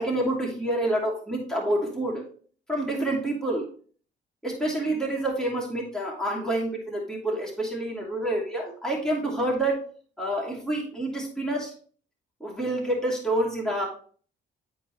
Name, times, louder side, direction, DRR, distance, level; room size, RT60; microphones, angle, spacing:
voice 1, 0.0-2.2 2.7-3.7 4.4-9.8 10.2-11.7 12.4-13.9, right 1 dB, 5° left, -3 dB, 2.8 m, -28 dB
11.0 x 4.7 x 3.0 m, 0.44 s
cardioid pair, 90°, 20 cm